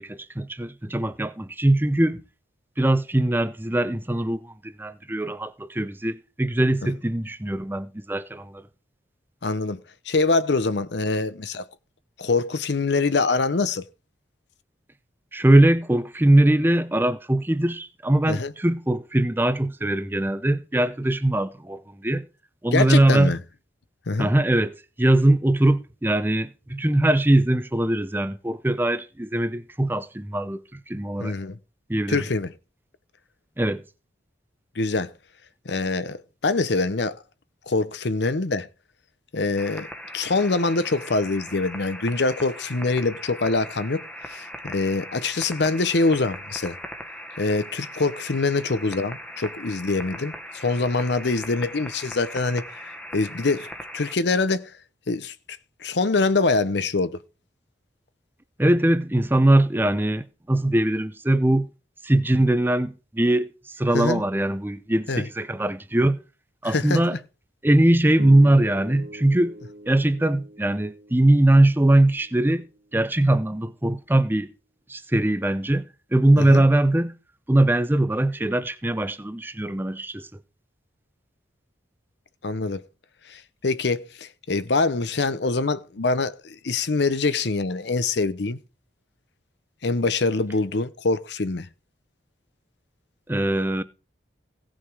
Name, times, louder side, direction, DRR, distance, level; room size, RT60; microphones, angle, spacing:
voice 1, 0.0-2.2 2.8-8.6 15.3-22.2 22.6-23.3 24.2-31.4 31.9-32.2 33.6-33.8 58.6-61.7 62.0-66.2 66.6-67.2 67.6-69.5 69.9-72.6 72.9-74.5 74.9-75.8 76.1-77.1 77.5-80.3 93.3-93.8, right 1 dB, 10° right, 0.6 m, -21 dB
voice 2, 9.4-11.7 12.2-13.8 18.3-18.5 22.7-23.4 24.1-24.3 31.2-31.6 32.1-32.5 34.8-35.1 35.7-37.2 37.7-38.7 39.3-39.9 40.1-44.0 44.3-46.8 47.4-53.7 53.9-54.8 55.1-55.4 55.8-57.2 63.9-64.2 65.1-65.3 66.6-67.2 76.4-76.6 82.4-82.8 83.3-88.6 89.8-91.7, left 3 dB, 65° left, 0.7 m, -24 dB
sound 1, 39.6-54.2, equal, 5° left, 1.1 m, -39 dB
sound 2, 68.1-72.6, right 1 dB, 75° right, 2.2 m, -42 dB
17.0 x 6.2 x 4.8 m
head